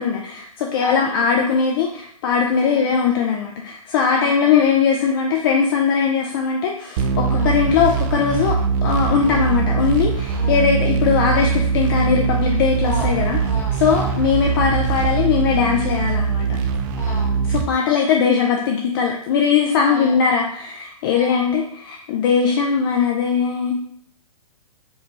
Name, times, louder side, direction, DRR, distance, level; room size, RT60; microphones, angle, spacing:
voice 1, 0.0-13.4 13.8-16.6 17.5-23.7, left 6 dB, 40° left, 1 dB, 0.4 m, -20 dB
voice 2, 0.7-1.3 2.6-2.9 4.1-4.5 7.2-7.6 9.2-9.5 10.3-10.6 12.8-14.2 16.9-17.4 19.9-20.2 21.1-21.4, left 2 dB, 15° left, -3 dB, 0.9 m, -35 dB
sound 1, 7.0-17.6, right 6 dB, 35° right, 0.4 m, -21 dB
4.4 x 2.2 x 3.1 m, 0.64 s
hypercardioid pair, 125°, 19 cm